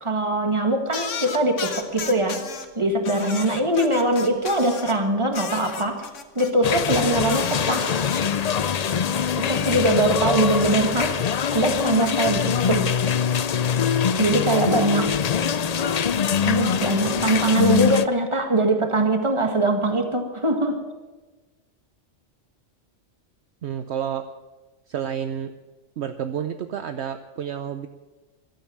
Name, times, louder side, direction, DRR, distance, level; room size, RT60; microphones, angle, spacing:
voice 1, 0.0-6.0 6.4-8.0 9.3-11.2 11.5-12.9 14.2-15.1 16.5-20.8, right 2 dB, 25° right, 4 dB, 2.0 m, -22 dB
sound 1, 0.9-2.7 3.0-5.0 5.3-8.2, left 6 dB, 80° left, 1.5 m, -34 dB
sound 2, 6.6-18.1, left 7 dB, 55° left, 0.4 m, -23 dB
voice 2, 23.6-24.3 24.9-25.5 26.0-27.9, right 9 dB, 65° right, 9 dB, 0.9 m, -30 dB
15.0 x 12.5 x 7.3 m, 1.2 s
omnidirectional pair, 1.3 m